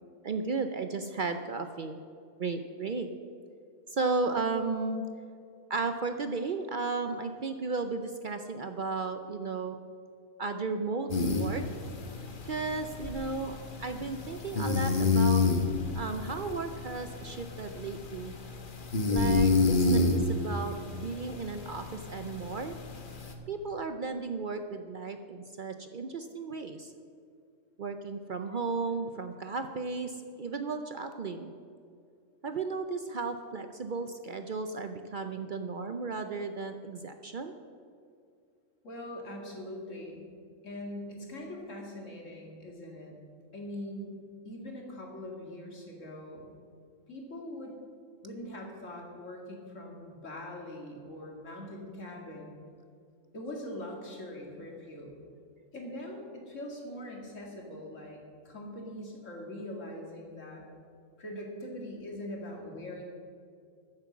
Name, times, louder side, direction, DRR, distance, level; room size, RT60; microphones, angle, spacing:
voice 1, 0.2-2.0 2.4-3.1 3.9-5.0 5.7-9.8 10.4-11.6 12.4-15.5 15.9-18.3 19.1-22.7 23.5-26.9 27.8-31.5 32.4-37.5, right 4 dB, 55° right, 7 dB, 0.6 m, -34 dB
sound 1, 11.1-23.3, left 3 dB, 45° left, 1.2 m, -30 dB
voice 2, 38.8-40.2 40.6-43.1 43.5-44.1 44.4-46.5 47.1-47.8 48.2-52.5 53.3-55.1 55.7-58.2 58.4-60.6 61.2-63.0, left 1 dB, 75° left, 0 dB, 2.5 m, -42 dB
14.0 x 7.7 x 6.1 m, 2.3 s
omnidirectional pair, 1.3 m